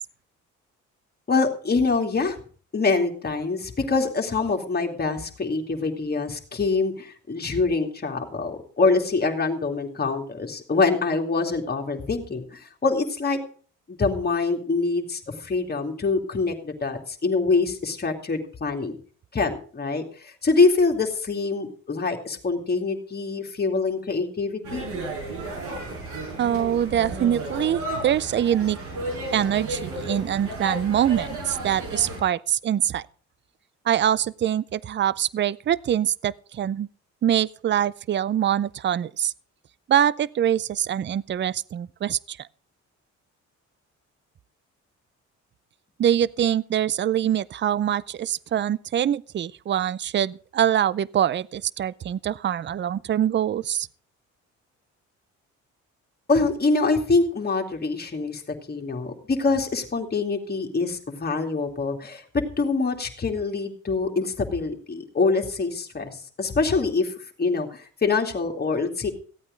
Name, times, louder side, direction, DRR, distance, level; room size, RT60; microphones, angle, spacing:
voice 1, 1.3-2.4 2.7-13.4 13.9-19.0 19.3-24.8 56.3-58.4 58.7-69.1, left 4 dB, 30° left, 2.5 m, -25 dB
sound 1, 24.6-32.2, right 2 dB, 80° right, 6.6 m, -33 dB
voice 2, 26.4-28.8 29.3-33.0 33.9-36.9 37.2-39.3 39.9-42.4 46.0-53.9, right 10 dB, 40° right, 0.5 m, -24 dB
15.5 x 8.8 x 5.2 m
cardioid pair, 90°, 30 cm